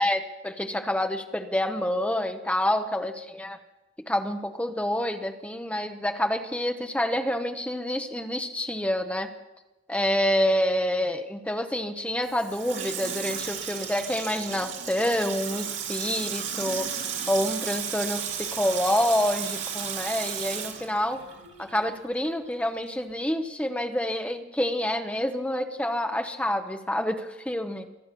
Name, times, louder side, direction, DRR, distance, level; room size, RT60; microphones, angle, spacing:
voice 1, 0.0-3.6 4.1-9.3 9.9-21.2 21.6-27.9, left 1 dB, 5° left, 6 dB, 0.9 m, -27 dB
Water tap faucet / Sink (filling or washing), 12.2-21.9 22.3-22.4, right 7 dB, 75° right, 2.8 m, -34 dB
23.5 x 8.7 x 6.9 m, 1.0 s
head